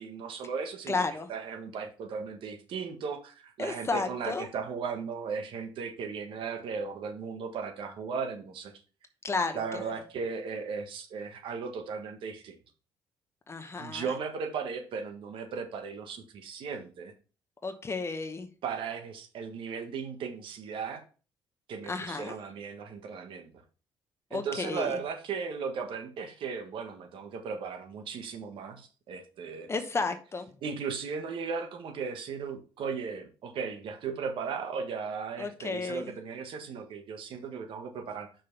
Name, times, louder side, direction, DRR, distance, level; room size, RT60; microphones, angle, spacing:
voice 1, 0.0-1.0 1.3-8.7 9.5-12.6 13.7-17.1 18.6-21.0 21.7-23.5 24.3-29.7 30.6-38.3, right 5 dB, 70° right, 6 dB, 1.5 m, -36 dB
voice 2, 0.9-1.3 3.6-4.5 9.2-9.9 13.5-14.1 17.6-18.5 21.8-22.3 24.3-25.0 29.7-30.5 35.4-36.1, left 3 dB, 30° left, 7 dB, 1.0 m, -32 dB
6.0 x 5.2 x 5.3 m, 0.36 s
cardioid pair, 90°, 9 cm